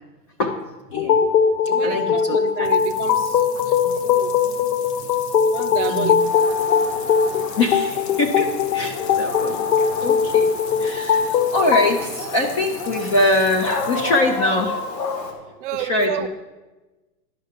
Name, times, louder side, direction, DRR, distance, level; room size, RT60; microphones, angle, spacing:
sound 1, 0.9-11.9, left 7 dB, 70° left, 0.9 m, -20 dB
voice 1, 0.9-1.3 1.7-2.7 3.8-4.0 5.9-6.1 7.5-10.5 10.8-15.0 15.8-16.3, left 2 dB, 20° left, 3 dB, 0.4 m, -23 dB
voice 2, 1.7-4.4 5.5-6.2 10.9-11.1 15.6-16.3, right 12 dB, 50° right, 13 dB, 0.7 m, -30 dB
sound 2, 2.4-14.8, left 7 dB, 45° left, 1.1 m, -39 dB
Dog, 6.2-15.3, left 2 dB, 90° left, 2.2 m, -32 dB
11.0 x 5.6 x 6.6 m, 1.2 s
hypercardioid pair, 125°, 49 cm